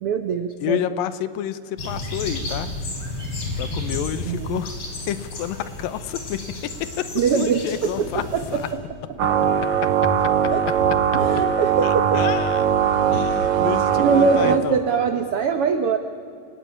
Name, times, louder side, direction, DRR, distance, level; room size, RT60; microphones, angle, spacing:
voice 1, 0.0-0.9 4.2-4.6 7.1-8.8 10.5-10.7 11.1-12.2 14.0-16.0, right 5 dB, 85° right, 8 dB, 1.2 m, -23 dB
voice 2, 0.6-2.7 3.6-4.8 5.1-8.2 8.5-8.6 10.2-10.3 11.8-12.7 13.1-14.8, left 11 dB, 80° left, 13 dB, 2.6 m, -29 dB
sound 1, 1.8-8.7, left 2 dB, 45° left, 4.3 m, -32 dB
sound 2, 9.2-14.6, right 8 dB, 55° right, 1.8 m, -20 dB
28.5 x 17.5 x 9.7 m, 2.4 s
omnidirectional pair, 4.1 m